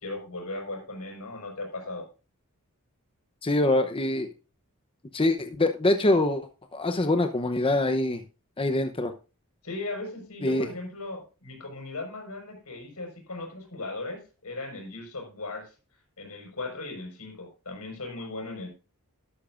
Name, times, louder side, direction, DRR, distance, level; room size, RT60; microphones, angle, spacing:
voice 1, 0.0-2.1 9.6-15.7 16.2-18.7, left 2 dB, 80° left, 2 dB, 5.3 m, -37 dB
voice 2, 3.4-4.3 5.1-8.2 8.6-9.1 10.4-10.7, left 2 dB, 25° left, 7 dB, 0.8 m, -24 dB
12.5 x 12.0 x 2.5 m, 0.32 s
head